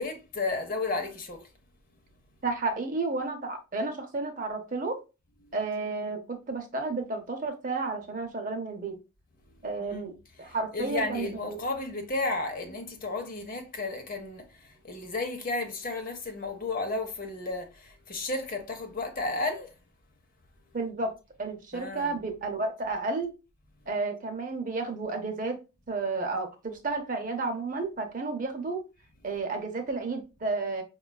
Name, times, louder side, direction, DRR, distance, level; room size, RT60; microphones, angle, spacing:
voice 1, 0.0-1.5 9.8-10.0 10.4-19.7 21.7-22.2, left 3 dB, 40° left, 0.7 m, -33 dB
voice 2, 2.4-5.0 5.5-9.0 9.6-11.6 20.7-21.1 21.4-23.3 23.9-25.6 25.9-28.8 29.2-30.8, right 3 dB, 40° right, 0.6 m, -32 dB
5.1 x 2.3 x 2.2 m
head